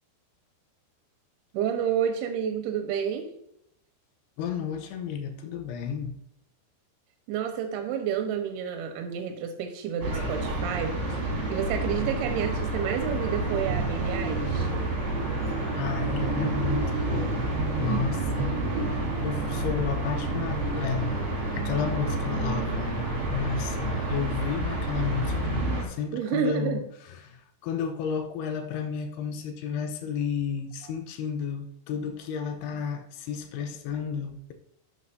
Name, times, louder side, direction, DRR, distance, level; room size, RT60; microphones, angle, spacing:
voice 1, 1.5-3.3 7.3-14.7 17.8-18.1 26.1-26.8, right 8 dB, 70° right, 5 dB, 2.8 m, -30 dB
voice 2, 4.4-6.1 15.8-17.5 17.8-26.8 27.2-34.5, left 6 dB, 75° left, 6 dB, 2.6 m, -32 dB
sound 1, 10.0-25.8, right 2 dB, 40° right, 3.1 m, -29 dB
12.0 x 7.3 x 2.7 m, 0.75 s
omnidirectional pair, 5.2 m